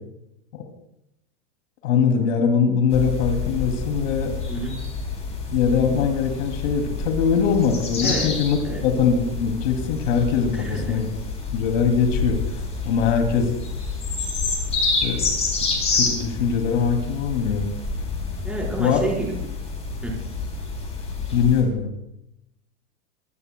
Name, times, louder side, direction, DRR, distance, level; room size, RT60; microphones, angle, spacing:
voice 1, 1.8-4.4 5.5-8.6 8.8-11.1 11.5-13.5 14.8-15.2 15.6-17.7 18.8-19.0 21.3-21.9, left 6 dB, 80° left, 4 dB, 2.8 m, -22 dB
sound 1, 2.9-21.6, left 4 dB, 15° left, 4.0 m, -28 dB
voice 2, 4.5-4.8 8.0-8.3 8.6-8.8 10.5-11.0 18.4-19.5 20.0-20.2, right 2 dB, 5° right, -4 dB, 4.5 m, -30 dB
24.5 x 17.0 x 2.3 m, 0.84 s
supercardioid pair, 155°, 37 cm